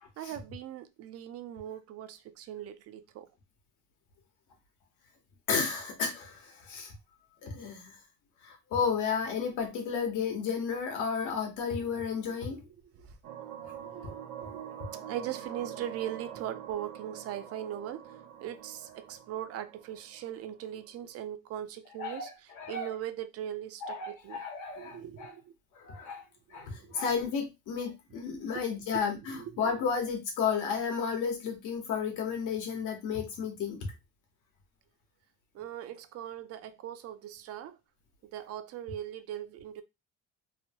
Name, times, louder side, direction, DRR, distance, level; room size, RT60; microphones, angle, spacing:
voice 1, 0.2-3.3 12.1-12.6 13.0-13.1 13.8-14.6 15.1-18.0 18.4-22.3 22.7-24.4 24.8-25.5 26.5-27.0 28.9-29.0 29.3-29.6 35.5-37.8 38.3-39.8, right 11 dB, 55° right, 0.4 m, -40 dB
voice 2, 5.5-6.9 7.4-8.0 8.4-12.6 22.0-22.9 23.8-25.3 25.7-26.2 26.5-33.9, left 6 dB, 80° left, 1.1 m, -33 dB
sound 1, 13.2-20.8, right 9 dB, 85° right, 0.7 m, -45 dB
3.0 x 2.1 x 2.8 m
cardioid pair, 125°, 30 cm